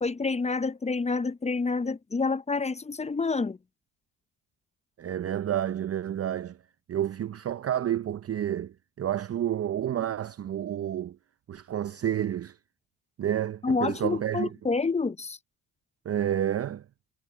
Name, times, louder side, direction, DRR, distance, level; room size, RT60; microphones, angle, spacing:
voice 1, 0.0-3.6 13.6-15.4, left 4 dB, 20° left, 0.6 m, -28 dB
voice 2, 5.0-6.6 6.9-11.2 11.5-12.6 13.2-14.5 16.1-16.8, right 10 dB, 40° right, 0.6 m, -30 dB
supercardioid pair, 70°, 38 cm